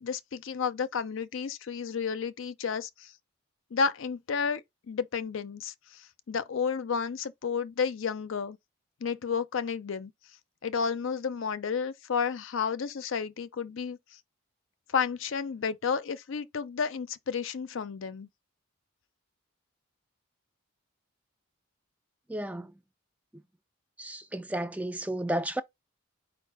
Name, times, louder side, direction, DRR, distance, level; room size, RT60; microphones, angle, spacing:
voice 1, 0.0-3.1 3.7-5.7 6.3-8.6 9.0-10.1 10.6-14.0 14.9-18.3, left 6 dB, 60° left, 0.5 m, -31 dB
voice 2, 22.3-22.7 24.0-25.6, right 1 dB, 5° right, 0.3 m, -32 dB
4.6 x 2.4 x 4.7 m
head